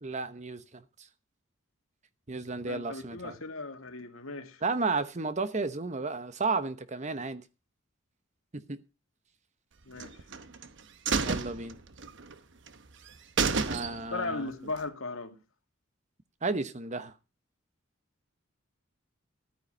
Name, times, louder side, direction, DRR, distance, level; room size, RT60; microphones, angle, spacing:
voice 1, 0.0-0.8 2.3-3.4 4.6-7.4 8.5-8.8 11.2-11.8 13.6-14.5 16.4-17.1, right 3 dB, 35° right, 0.9 m, -33 dB
voice 2, 2.7-4.6 9.9-10.1 13.9-15.4, left 3 dB, 85° left, 2.0 m, -37 dB
sound 1, 10.0-10.7 11.1-12.3 12.7-12.8 13.1-13.2 13.4-14.3 14.6-14.7, right 5 dB, 60° right, 0.9 m, -30 dB
13.5 x 9.5 x 5.4 m
head